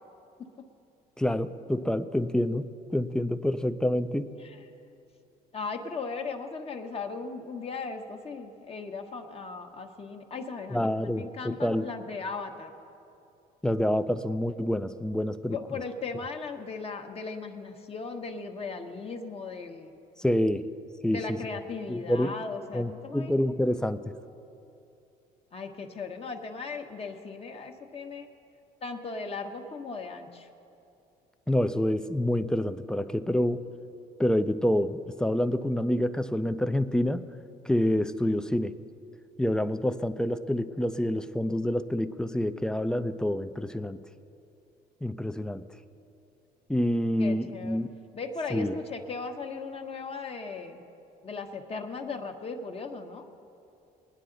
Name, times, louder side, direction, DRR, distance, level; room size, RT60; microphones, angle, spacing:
voice 1, 1.2-4.3 10.7-11.9 13.6-15.8 20.2-20.6 21.0-21.4 21.9-22.3 22.7-24.0 31.5-33.6 34.2-37.2 37.7-38.8 39.4-44.0 45.0-45.6 46.7-47.9 48.5-48.7, left 1 dB, 5° left, 11 dB, 0.4 m, -27 dB
voice 2, 5.5-12.7 15.5-19.9 21.1-23.4 25.5-28.3 28.8-30.5 47.2-47.8 48.1-50.8 51.2-53.3, left 4 dB, 35° left, 4 dB, 1.1 m, -37 dB
21.0 x 9.7 x 3.9 m, 2.7 s
cardioid pair, 110°, 17 cm